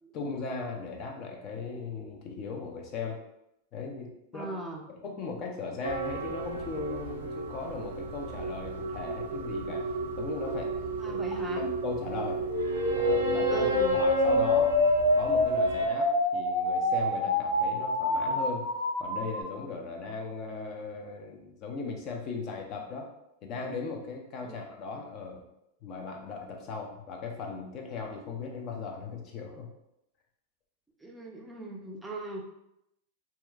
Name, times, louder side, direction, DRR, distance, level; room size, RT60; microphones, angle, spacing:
voice 1, 0.1-3.2 3.7-4.5 4.9-9.9 10.2-10.7 11.1-12.4 13.0-18.7 19.0-23.1 23.4-25.4 25.8-29.7, left 4 dB, 40° left, 2 dB, 0.5 m, -38 dB
voice 2, 4.3-4.8 11.0-11.7 13.5-14.0 24.4-24.6 31.0-32.5, right 2 dB, 5° right, -1 dB, 0.4 m, -38 dB
sound 1, 5.8-15.9, right 4 dB, 85° right, 0.5 m, -34 dB
sound 2, 12.4-19.4, left 2 dB, 65° left, 1.2 m, -26 dB
2.8 x 2.3 x 2.3 m, 0.83 s
hypercardioid pair, 130°, 0 cm